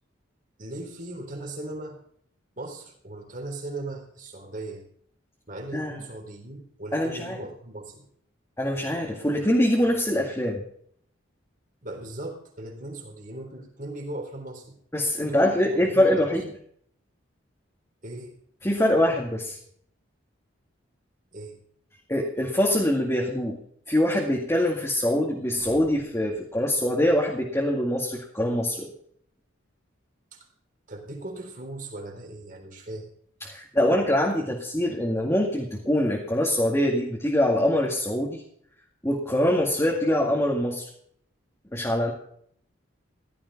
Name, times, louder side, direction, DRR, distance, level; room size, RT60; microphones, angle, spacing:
voice 1, 0.6-2.0 2.6-4.8 5.5-8.1 11.8-14.8 15.2-16.3 18.0-18.4 21.3-21.6 30.3-30.5 30.9-33.1, right 2 dB, 40° right, 2 dB, 3.8 m, -38 dB
voice 2, 6.9-7.4 8.6-10.6 14.9-16.5 18.6-19.6 22.1-23.6 23.9-28.9 33.4-38.4 39.0-40.8 41.7-42.1, left 1 dB, 15° left, -2 dB, 2.1 m, -24 dB
16.0 x 13.0 x 4.2 m, 0.64 s
head